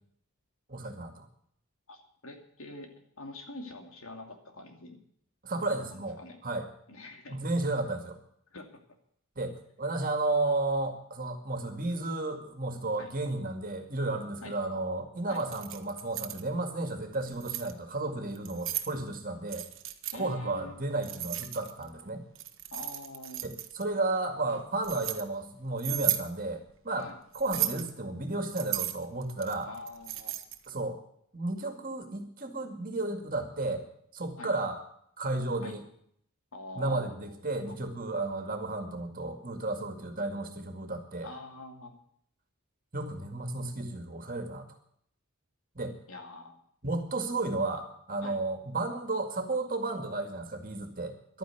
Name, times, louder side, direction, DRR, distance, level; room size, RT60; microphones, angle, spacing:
voice 1, 0.7-1.3 5.4-6.7 7.3-8.2 9.4-19.7 20.1-22.2 23.4-27.1 27.3-29.7 30.7-31.0 31.3-33.8 34.1-34.8 35.2-35.8 36.8-41.3 42.9-44.7 45.8-45.9 46.8-51.4, right 2 dB, 40° right, 5 dB, 2.2 m, -33 dB
voice 2, 1.9-5.0 5.9-6.4 6.9-7.4 8.5-8.7 13.0-13.1 14.4-14.6 15.3-15.4 20.1-20.7 22.7-23.4 27.0-27.2 29.6-30.3 34.4-34.5 35.6-35.8 36.5-37.4 37.7-37.8 41.2-41.9 46.1-46.6 48.2-48.4, left 2 dB, 70° left, 4 dB, 2.5 m, -45 dB
Keys jangling, 15.4-16.4 17.1-17.7 18.4-18.9 19.5-20.2 21.0-21.9 22.4-23.8 24.5-25.2 25.8-26.3 27.3-27.9 28.5-30.7, right 14 dB, 60° right, 1.2 m, -34 dB
12.0 x 9.5 x 9.2 m, 0.68 s
head